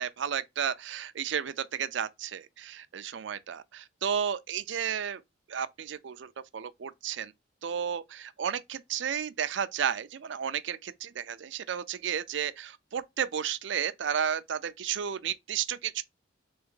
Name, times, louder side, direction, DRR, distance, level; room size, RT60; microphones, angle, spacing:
voice 1, 0.0-5.2 5.5-7.3 7.6-16.0, right 8 dB, 65° right, 0.4 m, -33 dB
3.5 x 3.4 x 3.7 m
head